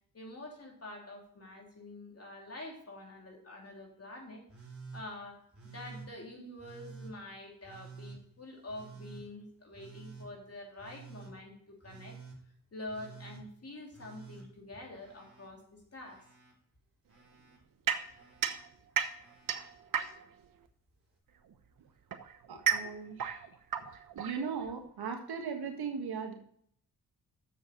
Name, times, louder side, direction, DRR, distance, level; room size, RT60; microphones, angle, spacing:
voice 1, 0.1-4.4 4.9-12.2 12.7-16.2 22.8-22.9, left 1 dB, 40° left, 0 dB, 3.3 m, -47 dB
Telephone, 4.5-5.0 5.5-6.1 6.6-7.1 7.6-8.2 8.7-9.2 9.7-10.3 10.8-11.3 11.8-12.4 12.9-13.4 13.9-15.5 15.8-16.5 17.1-17.6 18.1-18.6 19.2-19.7 20.9-21.0, right 5 dB, 35° right, 3.6 m, -50 dB
sound 1, 17.9-20.5 21.5-24.9, right 8 dB, 60° right, 1.0 m, -34 dB
voice 2, 22.5-23.4 24.1-26.3, right 6 dB, 80° right, 4 dB, 1.7 m, -38 dB
7.2 x 7.0 x 5.4 m, 0.65 s
cardioid pair, 60°, 38 cm